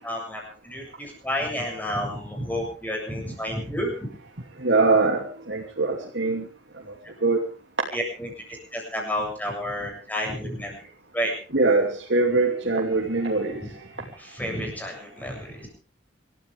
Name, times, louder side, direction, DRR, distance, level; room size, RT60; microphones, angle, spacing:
voice 1, 0.0-4.1 7.9-10.9 11.1-11.3 13.6-13.7 14.2-15.7, equal, 10° left, 0 dB, 7.7 m, -31 dB
voice 2, 4.6-6.5 7.2-7.4 11.5-13.6, right 3 dB, 65° right, -2 dB, 2.9 m, -22 dB
26.5 x 14.5 x 3.6 m, 0.39 s
head